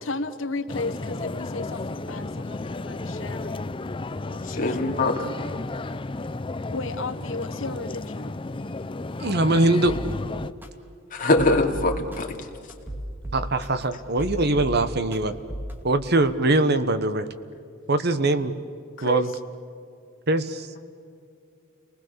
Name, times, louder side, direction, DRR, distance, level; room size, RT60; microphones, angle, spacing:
voice 1, 0.0-3.6 4.3-4.9 6.7-8.4 19.0-19.3, left 3 dB, 75° left, 9 dB, 1.2 m, -34 dB
sound 1, 0.7-10.5, left 2 dB, 25° left, 0.6 m, -33 dB
voice 2, 4.4-5.3 11.1-12.5, left 2 dB, 45° left, 2 dB, 2.7 m, -23 dB
voice 3, 9.2-9.9 13.3-15.3 15.8-17.3 17.9-18.5 19.0-19.3 20.3-20.7, right 2 dB, 55° right, 11 dB, 1.2 m, -22 dB
sound 2, 9.9-10.0 10.6-10.7 11.2-12.2 12.7-13.8 14.2-15.2 15.5-15.7, right 1 dB, 10° right, 2.4 m, -34 dB
30.0 x 20.0 x 6.9 m, 2.4 s
head